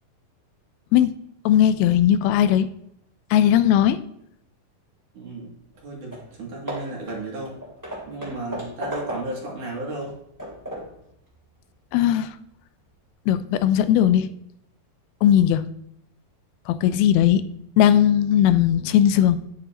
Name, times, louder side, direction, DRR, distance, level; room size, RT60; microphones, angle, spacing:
voice 1, 1.5-2.7 3.3-4.0 11.9-12.3 13.3-14.3 15.2-15.7 16.7-17.4 17.8-19.4, left 10 dB, 85° left, 13 dB, 2.4 m, -18 dB
voice 2, 5.1-5.5 5.8-7.6 8.0-10.2, right 2 dB, 60° right, -3 dB, 3.7 m, -34 dB
Hammer / Wood, 5.7-5.8 6.1-6.3 6.7-9.5 10.0-11.0, equal, 5° right, 2.2 m, -35 dB
10.0 x 9.3 x 2.9 m, 0.75 s
omnidirectional pair, 4.4 m